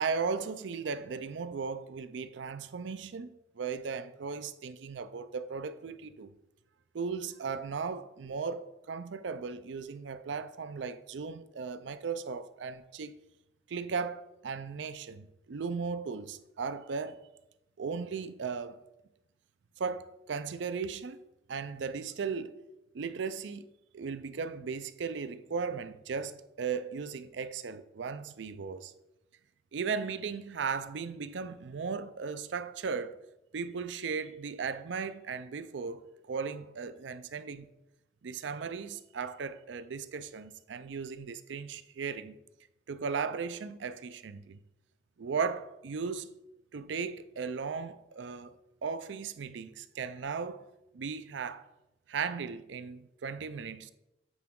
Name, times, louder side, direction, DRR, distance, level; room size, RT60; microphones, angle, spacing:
voice 1, 0.0-6.3 6.9-13.2 13.7-17.2 17.8-18.8 19.8-21.2 21.5-22.6 22.9-23.7 23.9-28.9 29.7-33.2 33.5-37.7 38.2-42.4 42.9-44.6 45.2-46.3 46.7-50.7 50.9-51.6 52.1-53.9, right 5 dB, 85° right, 0.4 m, -36 dB
8.0 x 4.6 x 3.7 m
head